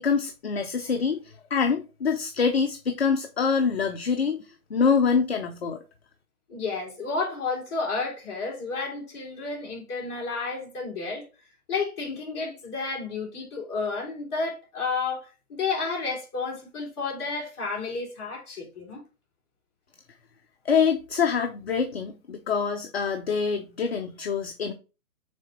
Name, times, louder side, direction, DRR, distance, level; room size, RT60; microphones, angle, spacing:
voice 1, 0.0-5.8 20.6-24.7, left 6 dB, 45° left, 0.7 m, -25 dB
voice 2, 6.5-11.2 11.7-19.0, left 4 dB, 20° left, 2.7 m, -31 dB
6.4 x 4.0 x 4.3 m
hypercardioid pair, 170°, 44 cm